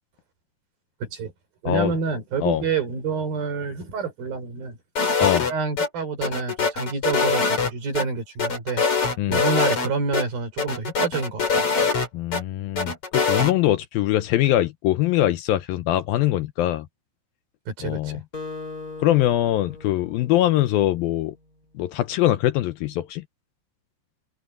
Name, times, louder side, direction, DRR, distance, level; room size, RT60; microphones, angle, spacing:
voice 1, 1.0-1.3 1.6-4.8 5.5-8.8 9.3-11.9 17.7-18.2, right 5 dB, 60° right, 7.0 m, -28 dB
sound 1, 5.0-5.9 6.2-8.0 8.4-9.9 10.1-10.2 10.6-12.4 12.8-13.5, left 5 dB, 35° left, 5.7 m, -23 dB
voice 2, 12.1-16.9 17.8-18.2 19.0-21.3 21.8-23.2, left 13 dB, 75° left, 2.3 m, -22 dB
Acoustic guitar, 18.3-21.1, left 3 dB, 20° left, 7.0 m, -39 dB
omnidirectional pair, 4.7 m